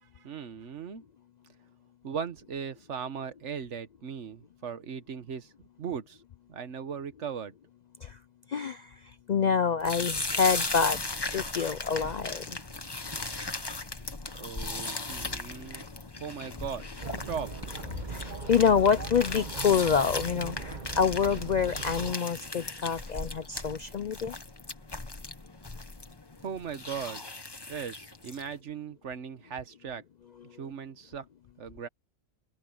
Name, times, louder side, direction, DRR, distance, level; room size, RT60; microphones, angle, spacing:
voice 1, 0.0-1.0 2.0-6.2 6.5-7.5 14.3-15.9 16.2-16.8 17.3-17.5 26.4-27.2 27.7-30.0 30.6-31.2 31.6-31.9, right 7 dB, 75° right, 1.4 m, -38 dB
voice 2, 9.3-11.0 11.3-12.4 18.1-24.3, left 6 dB, 60° left, 0.4 m, -26 dB
sound 1, 9.8-28.5, left 2 dB, 20° left, 1.1 m, -37 dB
Chatter, 17.0-22.2, right 3 dB, 40° right, 1.5 m, -39 dB
omnidirectional pair, 1.2 m